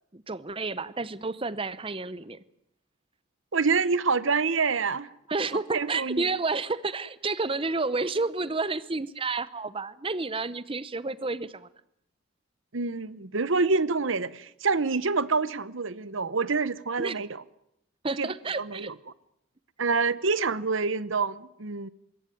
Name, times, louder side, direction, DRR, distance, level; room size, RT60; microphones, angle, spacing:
voice 1, 0.1-2.4 5.3-11.7 17.0-17.2 18.0-18.9, right 3 dB, 25° right, 0.8 m, -30 dB
voice 2, 3.5-5.1 5.5-6.3 12.7-17.4 18.2-18.9 19.8-21.9, right 4 dB, 60° right, 0.9 m, -27 dB
22.0 x 17.5 x 9.3 m
head